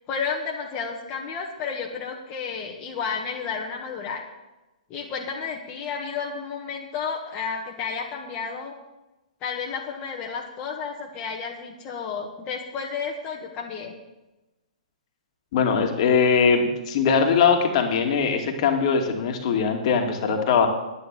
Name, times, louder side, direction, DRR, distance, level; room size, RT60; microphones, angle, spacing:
voice 1, 0.0-4.2 4.9-8.7 9.4-13.9, left 5 dB, 30° left, -2 dB, 1.7 m, -32 dB
voice 2, 15.5-20.7, left 6 dB, 50° left, 3 dB, 2.2 m, -21 dB
10.5 x 9.6 x 7.7 m, 1.0 s
hypercardioid pair, 125°, 4 cm